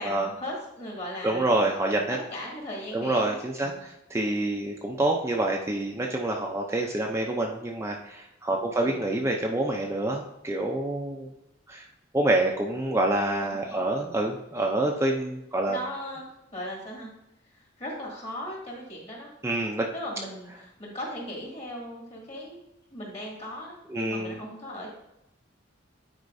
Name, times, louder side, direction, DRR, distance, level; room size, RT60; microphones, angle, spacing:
voice 1, 0.0-1.7 2.1-3.8 8.7-9.1 13.4-14.0 15.6-17.1 17.8-19.3 19.9-22.6 22.9-24.9, left 1 dB, 35° left, -2 dB, 2.2 m, -38 dB
voice 2, 1.2-2.2 2.9-11.3 11.7-11.8 12.1-15.8 19.4-19.9 23.9-24.4, right 2 dB, 15° right, 0 dB, 0.5 m, -27 dB
9.4 x 4.5 x 2.6 m, 0.88 s
head